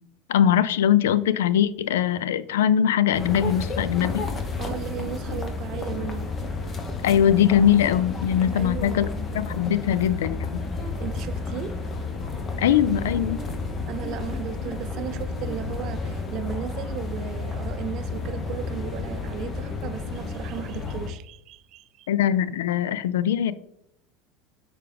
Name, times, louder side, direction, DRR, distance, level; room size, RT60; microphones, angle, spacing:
voice 1, 0.3-4.2 7.0-9.1 9.3-10.4 12.6-13.4 22.1-23.5, left 9 dB, 80° left, 0.3 m, -21 dB
sound 1, 3.1-21.1, left 3 dB, 30° left, 1.1 m, -31 dB
voice 2, 4.6-6.3 8.5-9.1 11.0-11.8 13.9-22.1, right 10 dB, 55° right, 0.5 m, -35 dB
6.8 x 4.9 x 3.4 m
hypercardioid pair, 85°, 0 cm